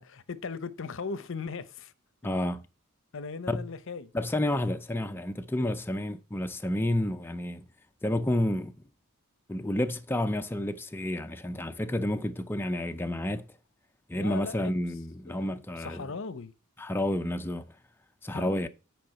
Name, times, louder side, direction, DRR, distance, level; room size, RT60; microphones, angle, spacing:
voice 1, 0.0-1.9 3.1-4.1 5.5-5.8 14.1-14.7 15.3-16.5 18.3-18.6, left 4 dB, 65° left, 0.7 m, -38 dB
voice 2, 2.2-2.6 3.5-3.7 4.1-7.6 8.0-8.7 9.5-13.5 14.1-16.1 16.8-17.6 18.2-18.7, left 1 dB, 10° left, 0.4 m, -30 dB
9.3 x 4.8 x 5.7 m
head